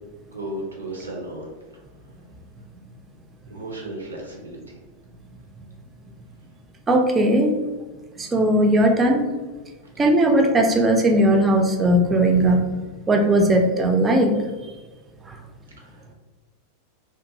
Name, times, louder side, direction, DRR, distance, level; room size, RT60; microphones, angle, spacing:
voice 1, 0.2-1.5 3.5-4.6 15.8-16.0, right 1 dB, 75° right, -1 dB, 0.7 m, -34 dB
voice 2, 6.9-7.5 8.2-9.2 10.0-12.8 13.1-14.4 15.3-15.4, right 1 dB, 15° right, 3 dB, 0.4 m, -18 dB
2.6 x 2.5 x 2.6 m, 1.3 s
figure-of-eight pair, 90°, 0 cm